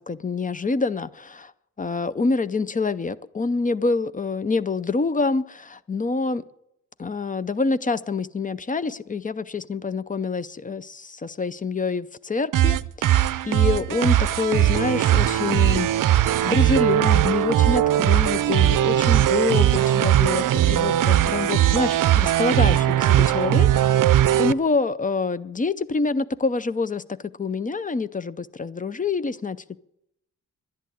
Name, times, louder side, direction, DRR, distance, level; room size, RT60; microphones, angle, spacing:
voice 1, 0.0-1.5 1.8-6.4 7.0-24.1 24.4-29.8, left 4 dB, 25° left, 15 dB, 0.5 m, -26 dB
sound 1, 12.5-24.5, right 12 dB, 70° right, 0.5 m, -19 dB
11.0 x 10.5 x 9.1 m, 0.79 s
wide cardioid pair, 135°, 33 cm